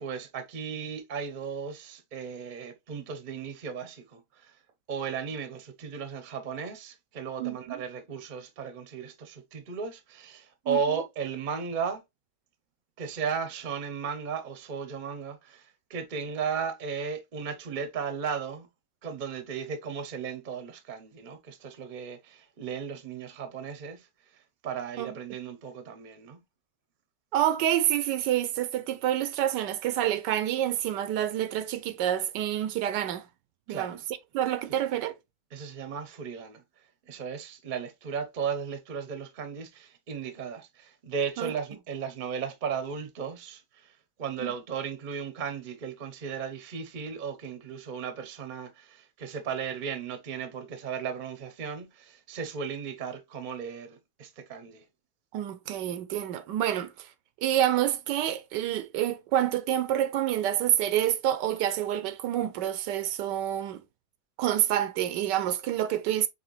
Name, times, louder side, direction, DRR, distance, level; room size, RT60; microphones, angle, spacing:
voice 1, 0.0-4.5 4.9-12.0 13.0-18.7 19.0-24.1 24.6-26.4 33.7-34.0 34.7-34.8 35.5-36.6 37.1-43.6 44.2-54.8, right 6 dB, 40° right, 0.7 m, -35 dB
voice 2, 27.3-33.2 33.7-34.0 34.3-35.2 41.4-41.5 44.4-44.5 55.3-57.1 57.4-63.8 64.4-66.3, right 11 dB, 85° right, 1.2 m, -28 dB
5.0 x 3.2 x 3.1 m
omnidirectional pair, 1.9 m